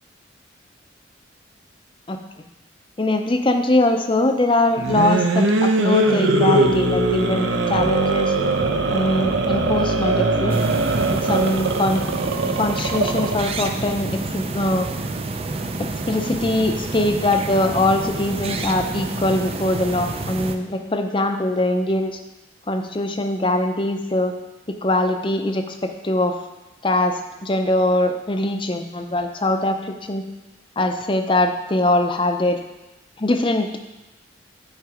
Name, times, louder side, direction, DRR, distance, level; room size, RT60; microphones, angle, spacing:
voice 1, 3.0-8.4 8.9-10.6 11.1-12.0 12.6-14.9 15.8-22.2 22.7-24.3 24.7-26.4 26.8-30.2 30.8-32.6 33.2-33.7, left 1 dB, 25° left, 6 dB, 0.6 m, -22 dB
sound 1, 4.7-13.5, right 2 dB, 80° right, 0.8 m, -21 dB
sound 2, 10.5-20.6, right 3 dB, 30° right, 0.4 m, -29 dB
9.7 x 4.6 x 4.9 m, 1.0 s
head